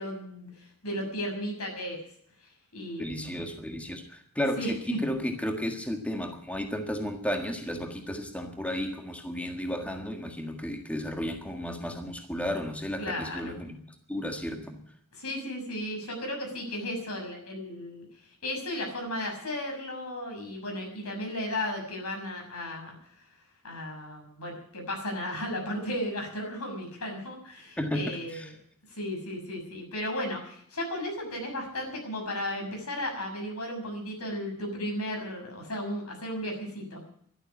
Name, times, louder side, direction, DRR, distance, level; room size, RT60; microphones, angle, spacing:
voice 1, 0.0-2.0 2.7-3.3 4.6-4.7 13.0-13.5 15.1-18.1 18.4-23.0 23.6-28.5 28.9-37.0, left 1 dB, 85° left, 2 dB, 6.5 m, -35 dB
voice 2, 3.0-13.8 14.1-14.8 27.8-28.5, equal, 5° left, 3 dB, 1.6 m, -33 dB
12.5 x 11.5 x 9.9 m, 0.65 s
head